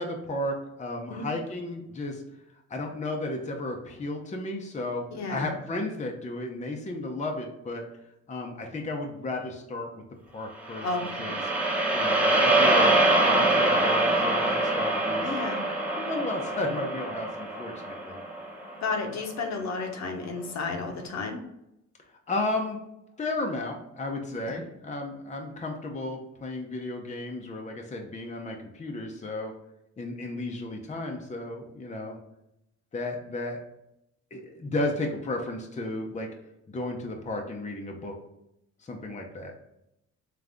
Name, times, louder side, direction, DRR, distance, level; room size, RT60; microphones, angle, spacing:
voice 1, 0.0-2.2 2.7-7.8 8.3-10.0 10.3-10.9 11.2-11.4 11.9-15.3 16.0-18.2 22.3-22.8 23.2-29.5 30.0-32.2 32.9-33.6 34.3-36.3 36.7-38.1 38.8-39.6, left 2 dB, 25° left, 1 dB, 0.7 m, -33 dB
voice 2, 5.1-5.5 10.8-11.3 15.2-15.6 18.8-21.4 24.4-24.6, left 3 dB, 65° left, 2 dB, 0.9 m, -32 dB
sound 1, 10.7-19.0, right 2 dB, 5° right, 1.1 m, -24 dB
3.7 x 3.3 x 3.5 m, 0.84 s
cardioid pair, 90°, 30 cm